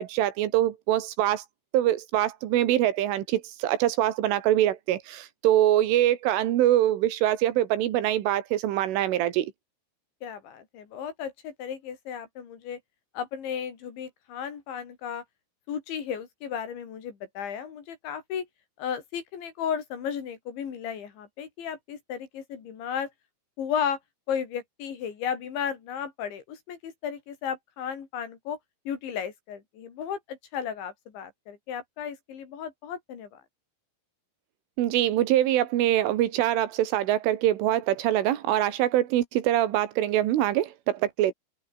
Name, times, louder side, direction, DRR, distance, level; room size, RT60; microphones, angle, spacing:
voice 1, 0.0-1.4 1.7-9.5 34.8-41.3, right 13 dB, 80° right, 4.3 m, -24 dB
voice 2, 10.2-12.8 13.2-15.2 15.7-18.5 18.8-23.1 23.6-24.0 24.3-28.6 28.9-33.4, left 8 dB, 70° left, 5.7 m, -34 dB
open air
omnidirectional pair, 5.6 m